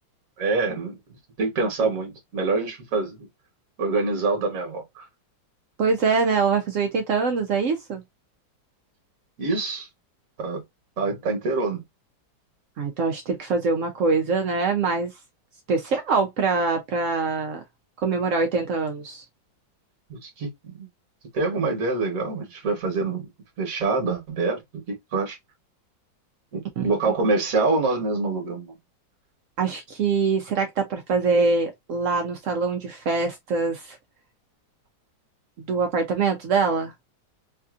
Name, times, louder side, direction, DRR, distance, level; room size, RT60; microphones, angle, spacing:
voice 1, 0.4-1.0 1.4-3.3 3.8-5.0 9.4-9.9 10.4-10.6 11.0-11.8 20.1-20.9 21.3-23.3 23.6-24.6 25.1-25.4 26.5-28.7, right 3 dB, 50° right, 1.4 m, -25 dB
voice 2, 5.8-8.0 12.8-15.1 15.7-17.6 18.0-19.2 26.8-27.2 29.6-34.0 35.7-36.9, right 4 dB, 80° right, 0.7 m, -24 dB
3.3 x 2.5 x 2.4 m
omnidirectional pair, 2.0 m